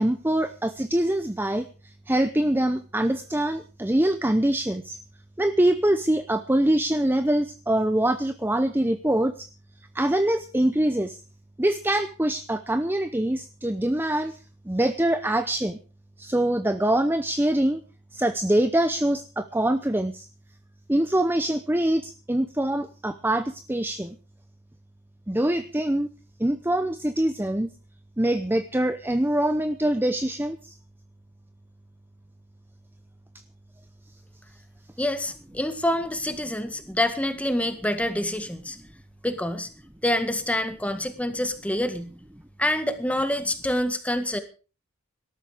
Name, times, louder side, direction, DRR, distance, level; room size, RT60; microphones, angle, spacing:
voice 1, 0.0-1.7 2.1-5.0 5.4-9.5 9.9-11.2 11.6-14.4 14.7-15.8 16.2-17.8 18.1-20.3 20.9-24.2 25.3-26.1 26.4-27.7 28.2-30.7, right 1 dB, 10° right, 10 dB, 0.7 m, -24 dB
voice 2, 35.0-38.8 39.2-39.7 40.0-42.1 42.6-44.4, left 1 dB, 5° left, 9 dB, 1.8 m, -26 dB
18.5 x 13.5 x 5.0 m, 0.36 s
head